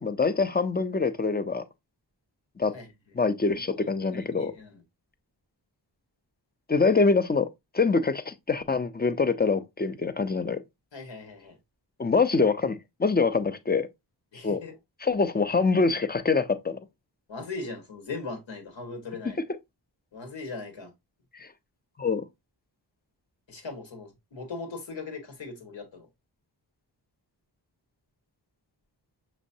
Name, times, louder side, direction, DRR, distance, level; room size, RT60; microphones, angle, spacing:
voice 1, 0.0-1.6 2.6-2.7 3.1-4.5 6.7-7.5 7.7-10.6 12.0-13.9 14.4-14.6 15.0-16.8 21.3-21.5 22.0-22.2, left 4 dB, 25° left, 0.4 m, -25 dB
voice 2, 3.2-4.8 10.9-11.6 14.3-14.8 17.3-19.4 20.1-20.9 23.5-26.1, left 3 dB, 90° left, 1.5 m, -39 dB
6.1 x 3.1 x 2.7 m
wide cardioid pair, 120°, 44 cm